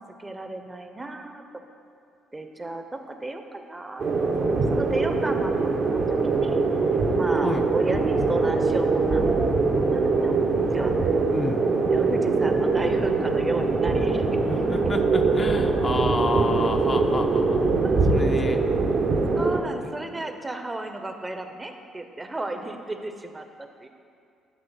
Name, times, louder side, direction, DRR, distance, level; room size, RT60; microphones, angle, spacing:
voice 1, 0.2-1.4 2.3-4.1 4.4-5.9 6.3-6.6 7.2-9.3 9.6-10.4 10.7-11.1 11.9-14.2 17.8-18.0 19.3-23.9, right 2 dB, 20° right, 6 dB, 0.6 m, -33 dB
sound 1, 4.0-19.6, right 4 dB, 55° right, 0.7 m, -23 dB
sound 2, 8.9-15.6, left 2 dB, 80° left, 1.0 m, -45 dB
voice 2, 11.3-11.6 14.5-17.7 18.1-18.6, left 3 dB, 30° left, 5 dB, 0.4 m, -30 dB
8.2 x 3.1 x 5.4 m, 2.5 s
supercardioid pair, 65°, 0 cm